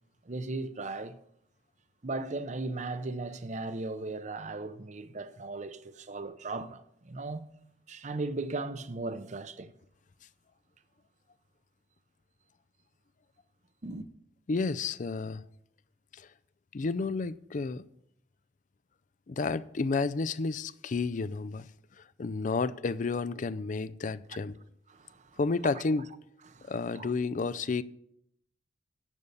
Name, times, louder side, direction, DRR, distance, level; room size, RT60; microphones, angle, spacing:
voice 1, 0.3-1.2 2.0-7.5 7.9-9.7 13.8-14.0 24.9-25.4 26.5-27.1, right 2 dB, 40° right, 0.7 m, -37 dB
voice 2, 14.5-15.4 16.1-16.3 16.7-17.9 19.3-21.7 22.2-24.6 25.4-26.1 26.7-27.8, left 4 dB, 45° left, 0.4 m, -31 dB
11.0 x 7.0 x 6.6 m
head